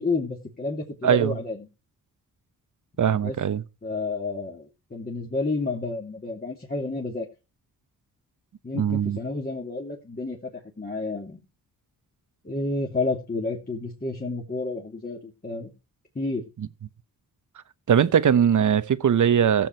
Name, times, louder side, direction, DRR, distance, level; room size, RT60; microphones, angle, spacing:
voice 1, 0.0-1.7 3.2-3.3 3.8-7.3 8.6-11.4 12.4-15.7 16.1-16.5, left 3 dB, 25° left, 2.8 m, -30 dB
voice 2, 1.0-1.3 3.0-3.6 8.7-9.2 17.9-19.7, right 8 dB, 55° right, 1.0 m, -20 dB
15.5 x 7.3 x 4.6 m
cardioid pair, 65°, 35 cm